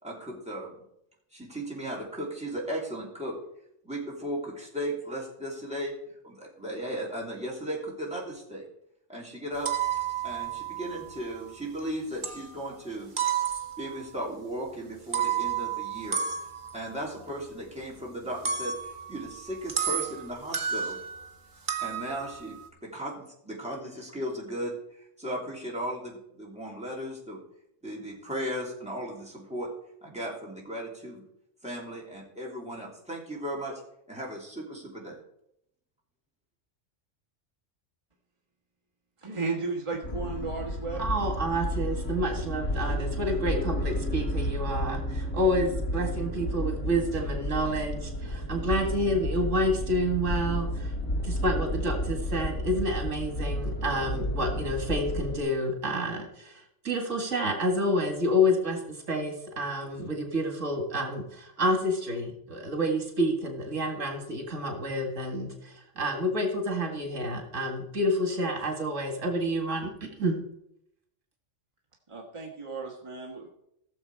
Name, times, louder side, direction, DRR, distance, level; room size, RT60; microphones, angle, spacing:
voice 1, 0.0-0.7 1.3-3.4 3.8-6.0 6.2-8.6 9.1-9.7 10.2-13.1 13.8-16.2 16.7-21.0 21.8-22.6 22.8-27.4 27.8-29.7 30.0-31.2 31.6-33.8 34.1-35.2, right 1 dB, 5° right, -4 dB, 2.9 m, -36 dB
sound 1, 9.5-11.9 12.2-12.8 13.2-14.1 15.0-21.3 21.7-22.7, right 8 dB, 45° right, 1.2 m, -32 dB
voice 2, 39.2-41.1 72.1-73.5, right 4 dB, 25° right, -1 dB, 1.6 m, -34 dB
sound 2, 40.0-55.4, equal, 90° left, 2.1 m, -32 dB
voice 3, 41.0-50.9 51.2-70.4, equal, 85° right, 3 dB, 2.3 m, -29 dB
16.0 x 7.1 x 4.7 m, 0.76 s
omnidirectional pair, 1.2 m